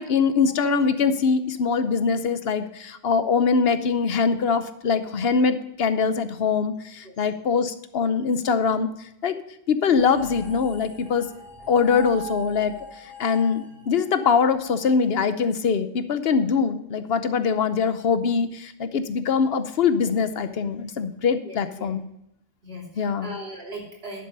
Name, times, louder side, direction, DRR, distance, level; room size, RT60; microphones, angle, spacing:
voice 1, 0.0-8.9 9.2-9.3 9.7-11.3 11.7-22.0 23.0-23.3, left 5 dB, 75° left, 11 dB, 1.0 m, -23 dB
sound 1, 9.9-15.4, right 2 dB, ahead, 3.3 m, -41 dB
voice 2, 21.4-21.9 22.6-24.2, right 1 dB, 75° right, -3 dB, 3.3 m, -38 dB
11.5 x 6.7 x 5.4 m, 0.81 s
omnidirectional pair, 1.0 m